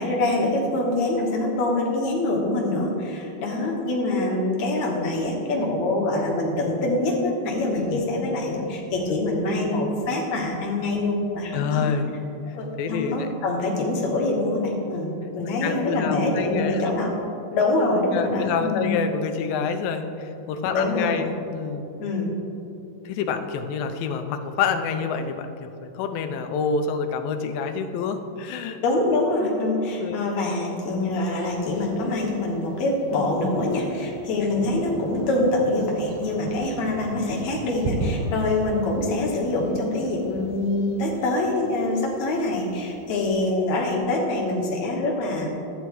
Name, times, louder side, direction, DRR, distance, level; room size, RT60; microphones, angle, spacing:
voice 1, 0.0-11.9 12.5-17.1 17.5-18.9 20.7-21.2 22.0-22.4 28.8-45.5, left 2 dB, 60° left, -1 dB, 2.3 m, -25 dB
voice 2, 11.5-12.1 12.8-13.3 15.6-16.9 18.1-21.9 23.1-28.8 30.0-30.2, left 6 dB, 80° left, 7 dB, 2.4 m, -27 dB
Thunder, 31.6-43.5, right 2 dB, 70° right, 1.9 m, -37 dB
12.5 x 9.2 x 3.0 m, 2.8 s
omnidirectional pair, 4.1 m